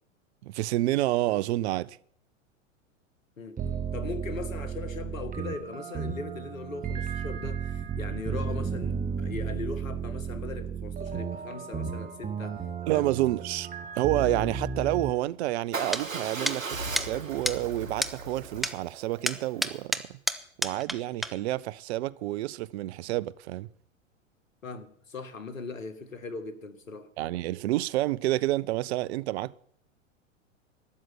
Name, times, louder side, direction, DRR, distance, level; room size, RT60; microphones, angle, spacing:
voice 1, 0.4-2.0 12.8-13.7 14.0-20.2 20.6-23.7 27.2-29.5, right 16 dB, 55° right, 0.7 m, -29 dB
sound 1, 3.6-15.1, right 6 dB, 20° right, 1.7 m, -34 dB
voice 2, 3.9-12.6 12.9-13.1 24.6-27.1, left 4 dB, 85° left, 1.9 m, -39 dB
Motorcycle / Engine starting / Idling, 15.7-19.8, right 3 dB, 90° right, 1.8 m, -37 dB
sound 2, 15.9-16.0 16.5-16.6 17.0-17.1 17.5-17.6 18.0-18.1 18.6-18.7 19.3-21.0 21.2-21.3, equal, ahead, 0.7 m, -28 dB
12.5 x 7.9 x 9.7 m
hypercardioid pair, 100°, 39 cm